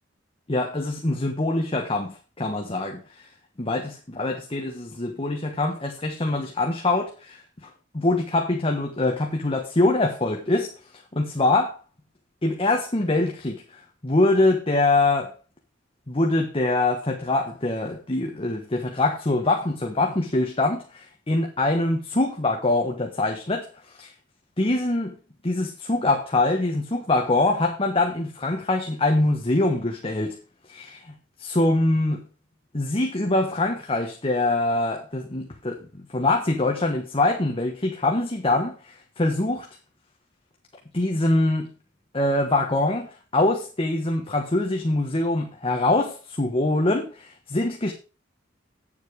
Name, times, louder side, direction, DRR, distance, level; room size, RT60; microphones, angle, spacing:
voice 1, 0.5-3.0 3.6-7.7 7.9-10.7 11.1-11.8 12.4-15.3 16.1-24.1 24.6-25.2 25.4-30.4 30.7-32.2 32.7-35.9 36.1-39.7 40.9-41.7 42.1-47.9, left 2 dB, 30° left, 1.2 m, -24 dB
9.2 x 7.4 x 4.7 m
head